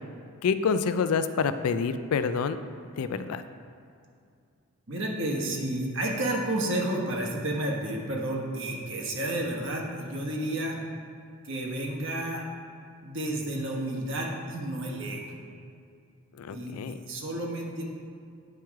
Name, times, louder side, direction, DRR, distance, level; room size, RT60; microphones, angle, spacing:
voice 1, 0.4-2.6 3.0-3.4 16.4-17.0, left 5 dB, 75° left, 11 dB, 0.4 m, -27 dB
voice 2, 4.9-10.8 11.4-12.4 13.0-15.3 16.5-17.8, right 1 dB, 55° right, -1 dB, 1.2 m, -31 dB
9.3 x 4.6 x 4.8 m, 2.4 s
head